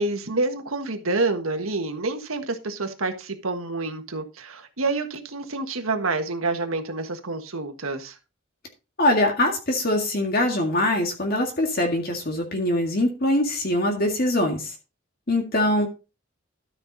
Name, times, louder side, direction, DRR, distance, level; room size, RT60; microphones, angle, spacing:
voice 1, 0.0-8.2, right 3 dB, 90° right, 6 dB, 1.5 m, -28 dB
voice 2, 9.0-14.7 15.3-15.9, left 1 dB, 45° left, 2 dB, 1.9 m, -23 dB
13.0 x 5.7 x 4.1 m, 0.31 s
head